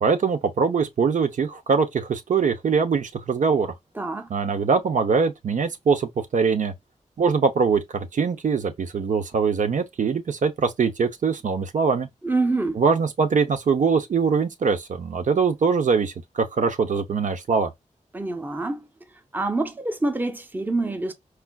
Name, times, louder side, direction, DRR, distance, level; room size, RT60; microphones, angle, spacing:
voice 1, 0.0-3.7 4.3-6.7 7.2-12.1 12.8-17.7, right 5 dB, 75° right, 0.6 m, -22 dB
voice 2, 3.9-4.3 12.2-12.8 18.1-18.9 19.3-21.1, right 2 dB, 15° right, 0.6 m, -26 dB
4.4 x 2.4 x 2.2 m
wide cardioid pair, 90°, 13 cm